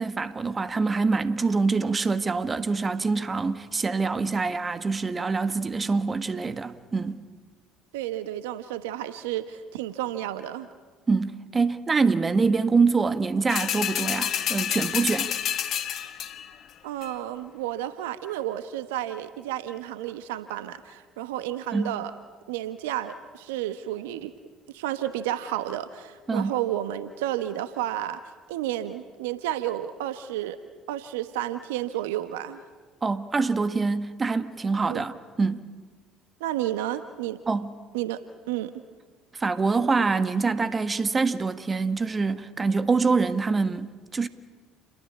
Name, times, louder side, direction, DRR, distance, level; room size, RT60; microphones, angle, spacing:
voice 1, 0.0-7.2 11.1-15.3 21.7-21.9 26.3-26.5 33.0-35.6 37.5-37.7 39.3-44.3, right 4 dB, 30° right, 1.6 m, -25 dB
voice 2, 7.9-10.7 16.8-22.1 22.5-24.3 24.7-28.2 28.5-30.6 30.9-32.6 34.8-35.0 36.4-37.4 37.9-38.2 38.5-38.7, right 13 dB, 80° right, 1.2 m, -31 dB
sound 1, 13.5-16.6 17.0-17.1, left 10 dB, 55° left, 1.6 m, -29 dB
29.5 x 22.0 x 8.7 m
hypercardioid pair, 60°, 0 cm